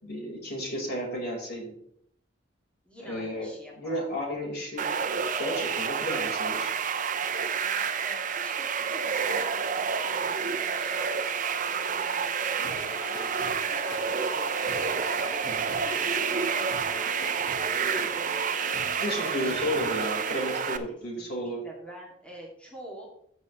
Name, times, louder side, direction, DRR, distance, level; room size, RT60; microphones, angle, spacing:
voice 1, 0.0-1.7 3.0-3.5 3.8-4.9 5.4-6.7 15.5-15.6 19.0-21.6, equal, 60° left, -2 dB, 4.2 m, -32 dB
voice 2, 2.8-4.0 6.6-6.8 7.1-14.5 15.2-20.0 20.9-23.1, equal, 5° left, -4 dB, 2.3 m, -47 dB
sound 1, 4.8-20.8, right 6 dB, 45° right, 0.7 m, -29 dB
sound 2, 12.6-20.8, left 1 dB, 80° left, 1.6 m, -41 dB
14.0 x 6.2 x 3.1 m, 0.67 s
head